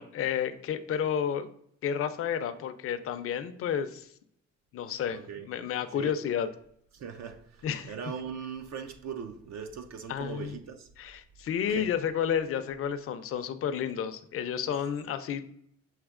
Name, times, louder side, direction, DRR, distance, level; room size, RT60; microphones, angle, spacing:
voice 1, 0.0-1.5 1.8-4.1 4.7-6.5 7.6-7.9 10.1-10.6 11.0-15.4, left 8 dB, 50° left, 0.5 m, -31 dB
voice 2, 5.1-5.5 5.9-6.2 6.9-10.9 11.7-11.9, right 6 dB, 60° right, 0.5 m, -40 dB
7.2 x 2.8 x 2.4 m
cardioid pair, 90°, 30 cm